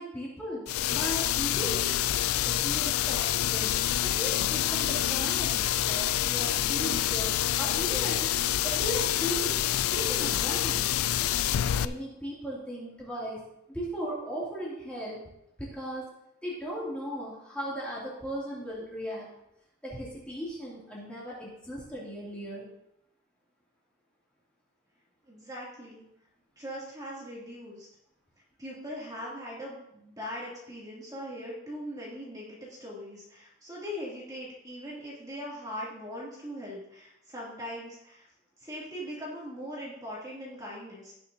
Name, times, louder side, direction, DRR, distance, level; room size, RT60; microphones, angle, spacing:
voice 1, 0.0-1.9 2.4-8.3 8.6-9.6 9.9-10.9 11.6-13.4 13.7-15.2 15.6-16.1 16.4-19.3 19.8-22.7, equal, 5° left, -7 dB, 2.6 m, -37 dB
sound 1, 0.7-11.9, left 12 dB, 80° left, 0.4 m, -27 dB
voice 2, 25.3-26.0 26.6-27.9 28.6-38.3 38.6-41.1, equal, 15° right, -6 dB, 2.6 m, -40 dB
18.0 x 6.5 x 2.8 m, 0.82 s
head